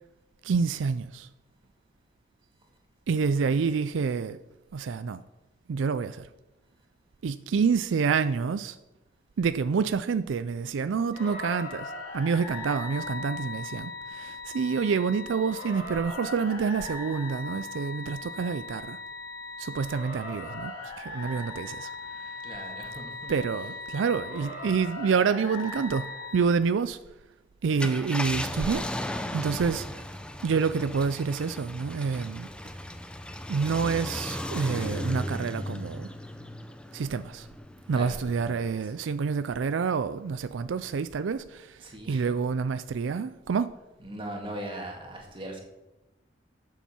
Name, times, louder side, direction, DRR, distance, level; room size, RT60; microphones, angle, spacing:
voice 1, 0.4-1.3 3.1-4.4 4.7-5.2 5.7-6.3 7.2-8.8 9.4-19.0 19.6-20.7 21.0-21.9 23.3-27.0 27.6-28.9 29.3-30.0 30.4-32.5 33.5-36.1 36.9-37.5 37.9-41.8 42.1-43.7, right 5 dB, 80° right, 0.4 m, -28 dB
sound 1, 11.1-26.4, left 2 dB, 45° left, 4.2 m, -39 dB
voice 2, 22.4-23.3 37.9-38.7 41.8-42.2 44.0-45.6, right 1 dB, 30° right, 2.0 m, -39 dB
Car, 27.6-38.5 39.0-39.1 41.1-41.3, left 1 dB, 5° left, 0.6 m, -36 dB
12.0 x 7.3 x 4.4 m
head